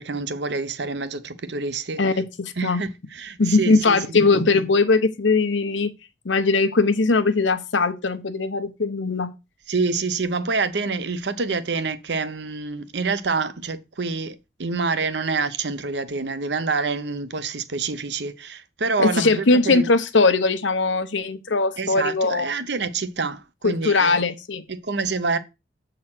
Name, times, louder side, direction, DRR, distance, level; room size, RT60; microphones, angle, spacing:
voice 1, 0.0-2.0 2.6-4.0 9.7-19.8 21.8-24.2 24.7-25.4, right 4 dB, 70° right, 0.8 m, -27 dB
voice 2, 2.0-2.8 3.4-5.9 6.2-9.3 19.0-22.5 23.6-24.6, left 3 dB, 85° left, 0.9 m, -20 dB
7.7 x 4.0 x 5.9 m
head